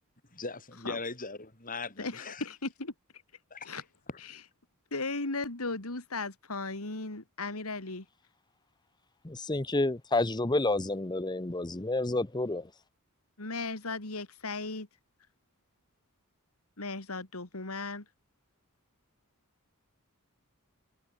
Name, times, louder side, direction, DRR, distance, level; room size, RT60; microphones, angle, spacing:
voice 1, 0.3-2.5 3.5-4.2, left 3 dB, 40° left, 7.2 m, -40 dB
voice 2, 2.0-2.9 3.7-3.8 4.9-8.0 13.4-14.9 16.8-18.0, left 3 dB, 80° left, 3.1 m, -36 dB
voice 3, 9.2-12.7, left 2 dB, 20° left, 0.8 m, -29 dB
head